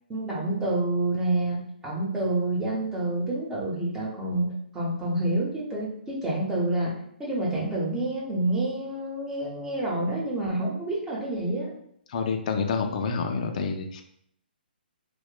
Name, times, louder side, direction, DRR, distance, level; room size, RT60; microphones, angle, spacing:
voice 1, 0.1-6.9 7.2-11.7, right 2 dB, 10° right, -5 dB, 0.7 m, -28 dB
voice 2, 12.1-14.0, left 5 dB, 45° left, 4 dB, 0.3 m, -28 dB
2.9 x 2.0 x 2.3 m, 0.69 s
figure-of-eight pair, 140°, 6 cm